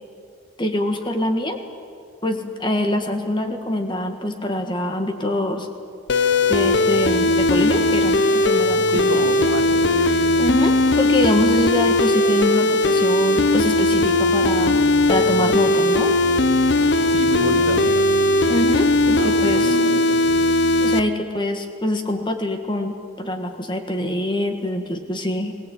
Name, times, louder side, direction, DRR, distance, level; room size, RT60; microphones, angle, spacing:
voice 1, 0.6-1.6 2.2-5.7 6.5-9.3 10.4-14.8 15.1-16.1 18.5-20.0 20.8-25.5, left 1 dB, 20° left, 6 dB, 1.6 m, -24 dB
sound 1, 6.1-21.0, left 2 dB, 55° left, 0.7 m, -18 dB
voice 2, 8.9-9.9 17.0-17.9 19.0-20.2, right 1 dB, 85° right, 6 dB, 1.8 m, -28 dB
22.0 x 17.5 x 8.6 m, 2.5 s
head